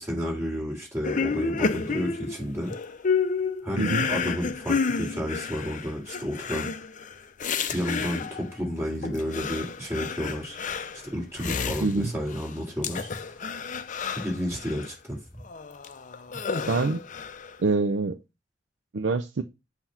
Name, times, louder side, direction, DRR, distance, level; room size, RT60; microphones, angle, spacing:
voice 1, 0.0-2.7 3.6-6.7 7.7-10.6 11.0-13.1 14.1-15.2, equal, 15° right, 3.1 m, -31 dB
sound 1, 1.0-8.5 9.0-12.5 12.8-14.9 15.4-17.5, left 5 dB, 45° left, 0.6 m, -30 dB
voice 2, 3.8-4.1 11.8-12.1 16.7-17.0 17.6-18.2 18.9-19.4, right 3 dB, 75° right, 0.5 m, -25 dB
7.8 x 2.9 x 5.7 m
head